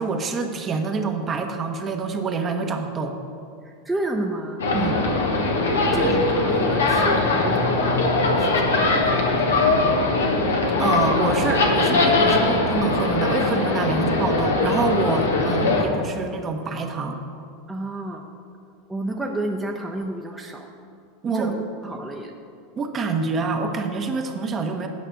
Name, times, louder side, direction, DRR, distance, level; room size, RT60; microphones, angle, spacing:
voice 1, 0.0-3.1 4.7-5.0 10.8-17.2 21.2-21.7 22.8-24.9, right 4 dB, 30° right, 4 dB, 1.1 m, -26 dB
voice 2, 3.8-4.6 4.9-5.2 5.9-7.9 8.2-10.1 15.4-15.9 17.7-18.2 18.9-20.6 21.3-21.5 21.8-22.3, right 1 dB, 10° right, 0 dB, 0.9 m, -31 dB
sound 1, 4.6-15.8, left 2 dB, 90° left, 1.4 m, -21 dB
9.4 x 5.6 x 7.8 m, 2.4 s
hypercardioid pair, 95°, 0 cm